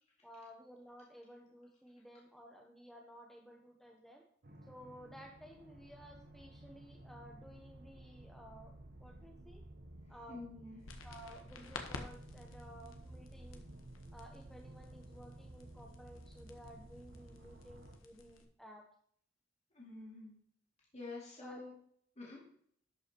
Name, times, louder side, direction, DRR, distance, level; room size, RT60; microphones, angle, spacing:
voice 1, 0.2-4.2 4.7-9.6 10.1-10.4 11.0-13.6 14.1-18.8 21.4-21.6, equal, ahead, 0 dB, 0.9 m, -55 dB
sound 1, 4.4-18.0, right 1 dB, 50° right, 1.0 m, -54 dB
voice 2, 10.3-10.8 19.7-20.3 20.9-21.8 22.2-22.4, left 3 dB, 35° left, -4 dB, 2.5 m, -48 dB
sound 2, 10.8-18.4, left 3 dB, 90° left, 1.1 m, -52 dB
12.0 x 5.5 x 4.5 m, 0.64 s
head